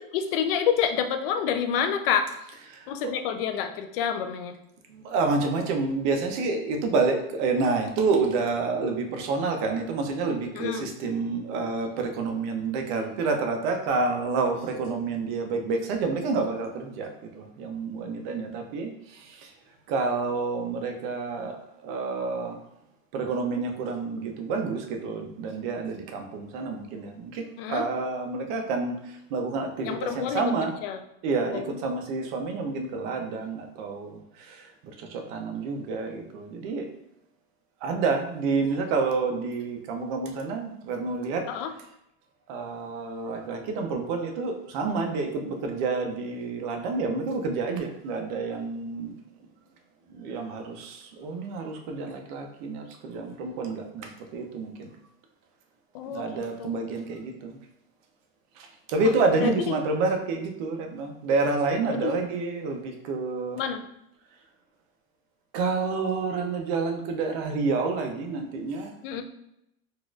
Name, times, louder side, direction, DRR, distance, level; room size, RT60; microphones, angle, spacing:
voice 1, 0.1-2.3 2.9-4.5 10.5-10.9 27.6-27.8 29.8-30.4 30.8-31.0 31.5-31.6 41.5-41.7 55.9-56.8 59.4-59.5 62.0-62.2 63.6-63.8 69.0-69.2, left 8 dB, 65° left, 8 dB, 0.4 m, -28 dB
voice 2, 2.7-3.2 4.9-19.5 19.9-21.6 21.8-22.6 23.1-30.8 31.2-34.6 35.0-36.9 37.8-41.5 42.5-49.1 50.1-54.9 56.1-57.5 58.6-63.6 65.5-68.9, right 4 dB, 50° right, 4 dB, 0.6 m, -29 dB
4.0 x 2.5 x 2.3 m, 0.80 s
supercardioid pair, 155°, 30 cm